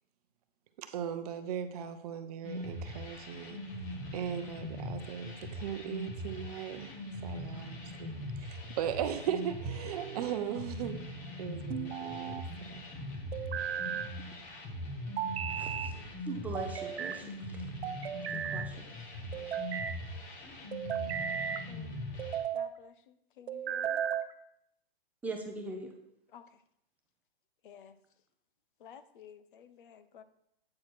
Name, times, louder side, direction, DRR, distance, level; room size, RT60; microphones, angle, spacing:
voice 1, 0.8-3.6 4.1-6.9 7.2-11.0 11.4-12.3 12.7-12.8, right 9 dB, 40° right, 0.7 m, -38 dB
sound 1, 2.4-22.4, left 1 dB, 25° left, 1.4 m, -41 dB
sound 2, 9.7-10.3 11.7-12.5 13.3-14.1 15.2-16.0 16.5-17.2 17.8-18.7 19.3-20.0 20.7-21.7 22.2-22.7 23.5-24.3, right 8 dB, 80° right, 0.8 m, -35 dB
voice 2, 15.5-15.9 16.2-17.6 18.5-18.9 25.2-25.9, right 3 dB, 5° right, 0.5 m, -41 dB
voice 3, 22.5-22.9 23.4-24.0 26.3-26.5 27.6-27.9 28.8-30.2, left 8 dB, 55° left, 0.7 m, -52 dB
8.6 x 4.2 x 6.2 m
hypercardioid pair, 155°, 31 cm